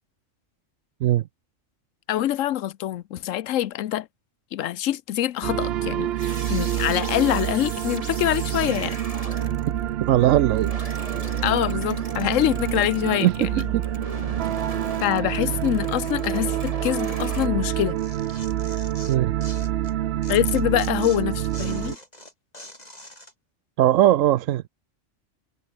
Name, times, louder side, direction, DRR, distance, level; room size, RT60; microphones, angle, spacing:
voice 1, 2.1-4.1 4.5-9.0 11.4-13.6 15.0-18.0 20.3-22.0, left 12 dB, 85° left, 1.0 m, -25 dB
sound 1, 5.4-21.9, right 12 dB, 65° right, 0.7 m, -27 dB
sound 2, 6.2-17.5, right 1 dB, 25° right, 8.0 m, -39 dB
voice 2, 10.0-10.7 11.1-11.2 13.2-13.8 19.1-19.3 23.8-24.7, right 13 dB, 85° right, 1.0 m, -20 dB
Tearing, 17.7-19.9 20.2-23.3, left 1 dB, 30° left, 7.9 m, -44 dB
omnidirectional pair, 1.3 m